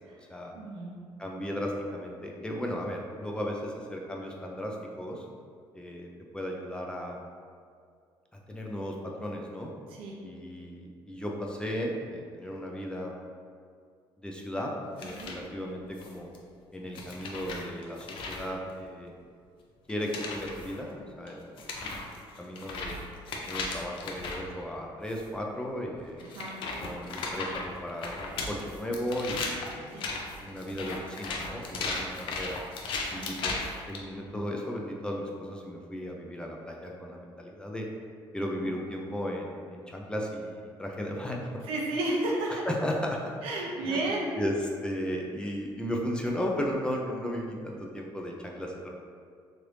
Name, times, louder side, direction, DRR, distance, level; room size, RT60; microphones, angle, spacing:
voice 1, 0.5-1.0 9.9-10.2 15.2-15.4 26.2-26.6 29.9-30.1 33.2-33.3 38.6-38.7 41.7-42.6 43.4-44.3, right 2 dB, 85° right, -2 dB, 0.7 m, -32 dB
voice 2, 1.2-5.2 5.7-7.3 8.5-9.7 10.2-13.2 14.2-16.3 16.7-19.2 19.9-21.6 22.4-23.0 23.5-26.2 26.8-30.1 30.4-32.6 33.1-37.9 38.3-41.6 42.5-43.2 43.8-44.0 44.4-48.9, equal, 10° left, -1 dB, 0.4 m, -35 dB
sound 1, 15.0-15.4 16.0-16.4 16.9-18.5 19.9-20.7 21.3-21.4 21.6-24.5 25.1-25.3 26.2-34.0, left 3 dB, 65° left, 0.5 m, -36 dB
3.1 x 2.5 x 3.2 m, 2.2 s
cardioid pair, 115°, 9 cm